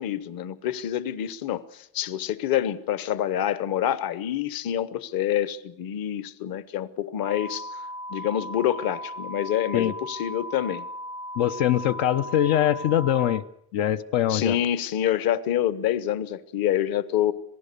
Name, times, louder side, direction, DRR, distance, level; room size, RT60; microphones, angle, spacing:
voice 1, 0.0-7.7 8.1-10.9 14.3-17.3, left 11 dB, 55° left, 1.1 m, -27 dB
sound 1, 7.2-13.4, equal, 35° left, 0.9 m, -37 dB
voice 2, 11.4-13.4 13.7-14.6, left 11 dB, 90° left, 1.0 m, -23 dB
26.5 x 18.0 x 6.8 m
cardioid pair, 145°, 43 cm